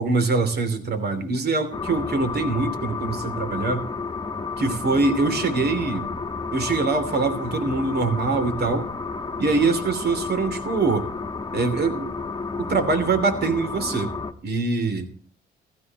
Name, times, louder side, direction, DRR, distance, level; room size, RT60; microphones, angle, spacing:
voice 1, 0.0-3.9 4.6-6.1 6.5-8.9 9.4-11.1 11.5-12.1 12.6-14.1 14.4-15.1, right 3 dB, 55° right, 9 dB, 2.9 m, -23 dB
sound 1, 1.7-14.3, left 4 dB, 20° left, 1.4 m, -31 dB
15.5 x 15.5 x 2.9 m, 0.43 s
cardioid pair, 90°, 20 cm